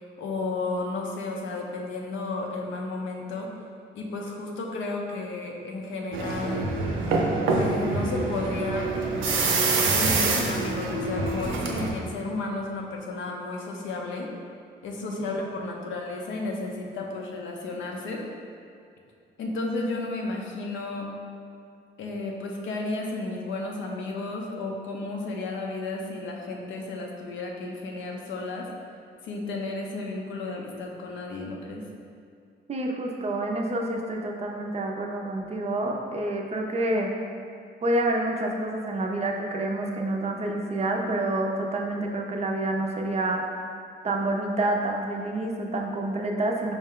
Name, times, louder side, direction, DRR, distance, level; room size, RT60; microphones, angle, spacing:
voice 1, 0.2-3.5 3.9-6.7 7.6-8.9 9.9-14.3 14.8-18.2 19.4-21.1 22.0-28.7 29.2-31.8, left 2 dB, 75° left, 0 dB, 0.6 m, -33 dB
sound 1, 6.1-11.9, right 3 dB, 80° right, 0.6 m, -25 dB
voice 2, 32.7-37.1 37.8-43.4 44.0-46.7, right 1 dB, 30° right, 1 dB, 0.4 m, -28 dB
4.6 x 2.2 x 3.6 m, 2.3 s
cardioid pair, 90°, 20 cm